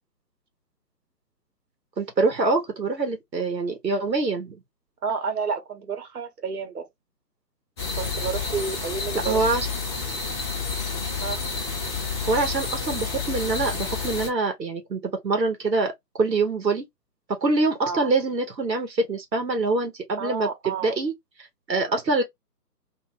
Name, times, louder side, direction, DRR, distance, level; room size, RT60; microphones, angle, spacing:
voice 1, 2.0-4.6 9.2-9.7 12.3-15.9 16.2-16.8 17.4-21.1 21.4-22.2, right 3 dB, 90° right, 1.0 m, -25 dB
voice 2, 5.0-6.9 7.9-9.5 11.2-11.4 17.8-18.1 20.2-21.0 21.8-22.0, right 5 dB, 65° right, 1.1 m, -30 dB
sound 1, 7.8-14.3, left 5 dB, 15° left, 0.7 m, -29 dB
2.6 x 2.3 x 3.2 m
figure-of-eight pair, 135°, 49 cm